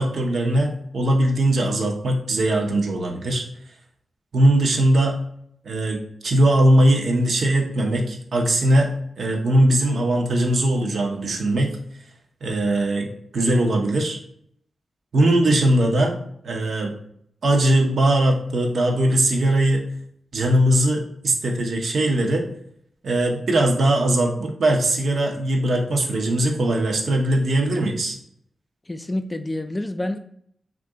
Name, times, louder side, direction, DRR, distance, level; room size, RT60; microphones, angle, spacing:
voice 1, 0.0-3.4 4.3-5.2 5.6-8.9 9.2-11.7 12.4-14.2 15.1-16.1 16.4-16.9 17.4-19.8 20.3-22.5 23.0-28.2, right 1 dB, 70° right, 1 dB, 0.6 m, -20 dB
voice 2, 28.9-30.2, left 1 dB, 25° left, 9 dB, 0.3 m, -28 dB
2.6 x 2.5 x 3.5 m, 0.68 s
cardioid pair, 45°, 0 cm